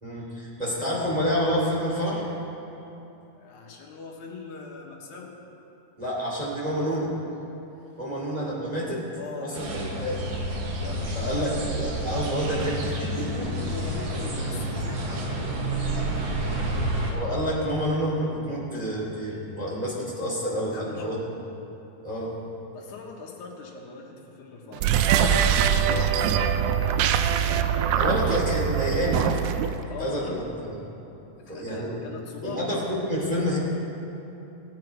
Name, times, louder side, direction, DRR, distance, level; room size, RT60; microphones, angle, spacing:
voice 1, 0.0-2.3 6.0-7.1 8.0-9.0 9.4-10.3 11.1-13.5 14.5-14.6 17.1-21.2 22.0-22.3 27.9-29.5 30.0-30.8 31.5-32.0 32.4-33.6, equal, 15° right, -6 dB, 2.3 m, -28 dB
voice 2, 3.3-5.3 9.1-9.8 10.8-11.1 11.4-11.5 13.4-17.0 20.7-21.3 22.7-26.1 29.9-30.4 31.4-32.7, left 4 dB, 75° left, -1 dB, 2.8 m, -41 dB
sound 1, 9.5-17.1, right 1 dB, 60° right, 2.4 m, -29 dB
sound 2, 24.7-29.8, right 8 dB, 80° right, 1.7 m, -23 dB
18.5 x 8.9 x 4.7 m, 3.0 s
omnidirectional pair, 3.6 m